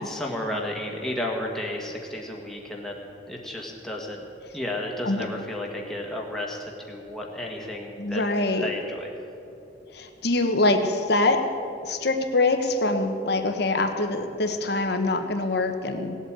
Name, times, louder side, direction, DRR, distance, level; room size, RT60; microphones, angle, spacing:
voice 1, 0.0-4.2 4.5-8.2 8.6-9.1, left 1 dB, ahead, -2 dB, 1.8 m, -33 dB
voice 2, 8.0-8.7 9.9-11.4 11.8-16.2, left 2 dB, 55° left, 6 dB, 1.2 m, -24 dB
18.0 x 8.4 x 8.9 m, 2.8 s
head